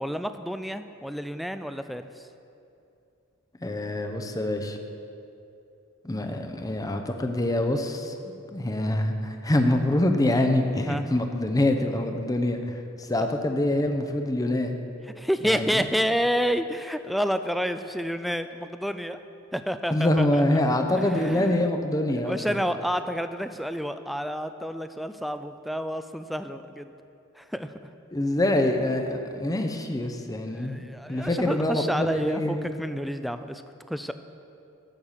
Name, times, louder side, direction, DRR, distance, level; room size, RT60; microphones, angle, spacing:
voice 1, 0.0-2.2 10.8-11.0 13.2-13.3 15.2-19.2 19.5-20.4 21.0-21.7 22.2-26.9 27.4-27.7 30.5-33.6 33.9-34.1, equal, ahead, 9 dB, 0.3 m, -29 dB
voice 2, 3.6-4.8 6.0-14.8 15.5-15.7 19.9-22.6 28.1-30.8 31.1-32.7, left 1 dB, 20° left, 5 dB, 0.7 m, -25 dB
9.0 x 6.5 x 7.2 m, 2.7 s
head